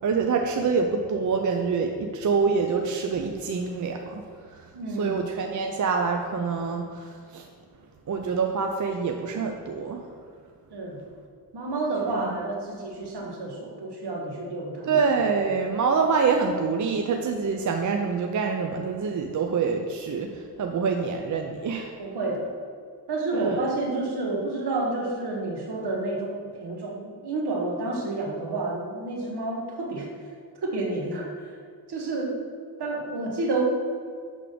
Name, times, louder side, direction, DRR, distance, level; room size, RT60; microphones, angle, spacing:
voice 1, 0.0-7.5 8.1-10.1 12.1-12.4 14.8-22.0 23.3-23.6, right 5 dB, 45° right, 3 dB, 0.5 m, -26 dB
voice 2, 4.7-5.2 10.7-11.0 11.5-14.9 22.0-22.5 23.1-30.1 30.6-31.5 31.9-32.3 32.8-33.6, right 2 dB, 70° right, 0 dB, 1.3 m, -30 dB
6.8 x 3.6 x 5.0 m, 2.1 s
cardioid pair, 90°, 41 cm